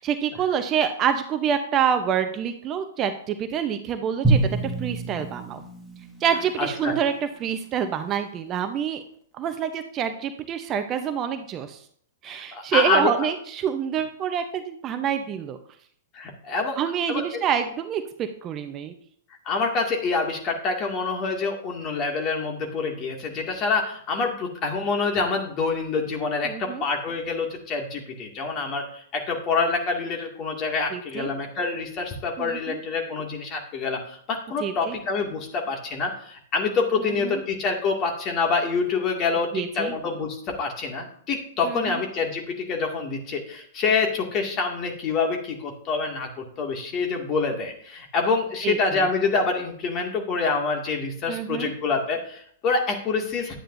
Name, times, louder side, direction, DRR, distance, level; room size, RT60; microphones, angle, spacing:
voice 1, 0.0-5.6 6.2-9.0 9.4-11.8 12.2-15.6 16.8-18.9 26.4-26.8 30.9-31.3 32.4-32.8 34.6-35.0 37.0-37.4 39.5-39.9 41.6-42.0 48.6-48.8 51.3-51.7, right 8 dB, 30° right, 8 dB, 0.8 m, -27 dB
Drum, 4.2-7.2, right 3 dB, ahead, 1.9 m, -27 dB
voice 2, 6.6-6.9 12.3-13.1 16.1-16.8 17.1-17.4 19.5-53.6, left 4 dB, 30° left, 2 dB, 2.2 m, -26 dB
11.5 x 8.9 x 2.7 m, 0.62 s
figure-of-eight pair, 105°, 0 cm